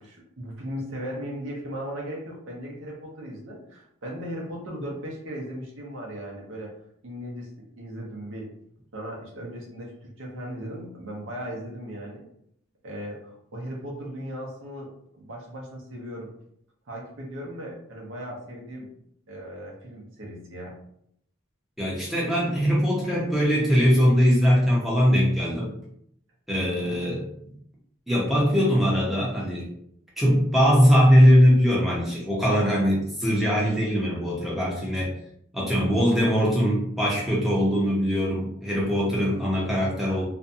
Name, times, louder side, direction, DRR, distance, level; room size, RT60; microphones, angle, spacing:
voice 1, 0.0-6.7 7.0-8.5 8.9-12.3 12.8-16.3 16.9-18.9 19.3-20.7 26.5-27.0, equal, 80° right, -2 dB, 0.7 m, -37 dB
voice 2, 21.8-25.7 26.5-27.2 28.1-29.7 30.2-35.1 35.5-40.2, equal, ahead, -5 dB, 0.6 m, -21 dB
2.5 x 2.2 x 2.6 m, 0.70 s
head